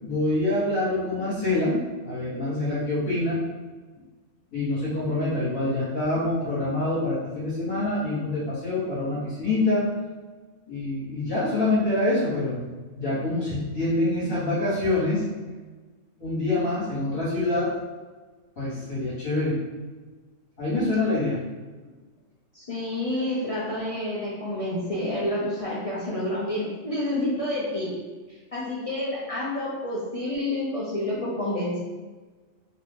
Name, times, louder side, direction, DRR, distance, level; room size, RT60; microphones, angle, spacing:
voice 1, 0.0-1.8 2.0-3.4 4.5-9.9 10.7-12.7 13.0-15.2 16.2-17.7 18.6-19.6 20.6-21.4, left 2 dB, 40° left, -9 dB, 1.4 m, -25 dB
voice 2, 22.5-27.9 28.5-31.8, left 1 dB, 60° left, -7 dB, 0.3 m, -29 dB
2.7 x 2.4 x 3.5 m, 1.3 s
omnidirectional pair, 1.3 m